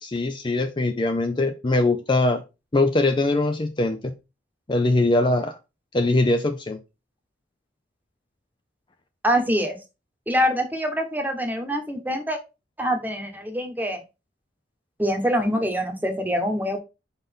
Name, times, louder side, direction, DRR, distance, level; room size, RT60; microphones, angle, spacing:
voice 1, 0.0-2.4 2.7-4.0 4.7-5.6 5.9-6.8, left 2 dB, 25° left, 7 dB, 0.5 m, -22 dB
voice 2, 9.2-9.8 10.3-12.4 12.8-14.0 15.0-16.8, equal, 10° right, 4 dB, 1.1 m, -24 dB
5.3 x 4.0 x 5.2 m, 0.27 s
head